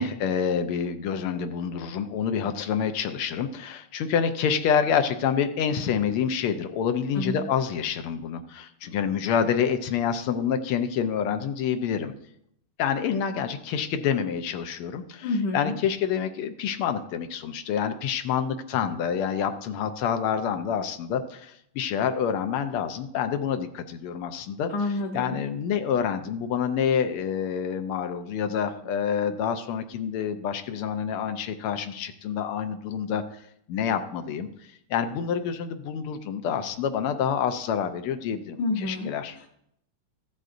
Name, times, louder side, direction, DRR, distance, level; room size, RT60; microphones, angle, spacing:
voice 1, 0.0-12.1 12.8-24.7 25.1-33.2 33.7-34.5 34.9-39.3, left 7 dB, 90° left, 8 dB, 1.6 m, -27 dB
voice 2, 15.2-15.7 24.7-25.4 38.6-39.5, left 2 dB, 60° left, -1 dB, 1.3 m, -29 dB
14.0 x 7.9 x 2.6 m, 0.73 s
omnidirectional pair, 2.4 m